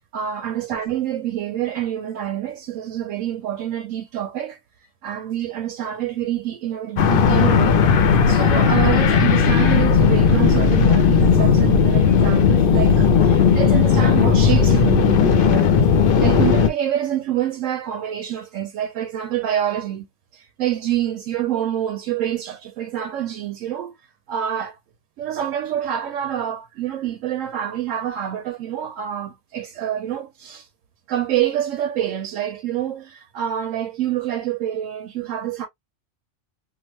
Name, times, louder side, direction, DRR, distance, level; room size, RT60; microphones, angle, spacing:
voice 1, 0.1-4.6 5.0-15.7 16.2-20.1 20.3-23.9 24.3-24.8 25.2-30.7 31.1-35.7, right 11 dB, 85° right, 1.0 m, -26 dB
sound 1, 7.0-16.7, left 6 dB, 60° left, 0.6 m, -16 dB
2.9 x 2.1 x 3.0 m
omnidirectional pair, 1.3 m